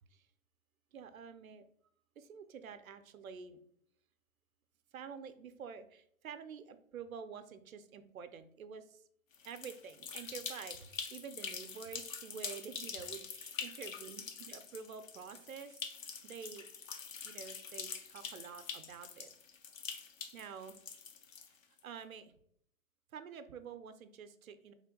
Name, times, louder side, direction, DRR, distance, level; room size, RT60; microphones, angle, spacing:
voice 1, 0.9-1.6 2.2-3.6 4.9-9.0 9.4-15.8 16.2-16.7 17.2-19.3 20.3-20.8 21.8-22.3 23.1-24.7, right 6 dB, 90° right, 10 dB, 0.5 m, -48 dB
sound 1, 9.3-21.8, left 6 dB, 75° left, 0.7 m, -45 dB
3.2 x 2.2 x 3.7 m, 0.68 s
hypercardioid pair, 135°, 40 cm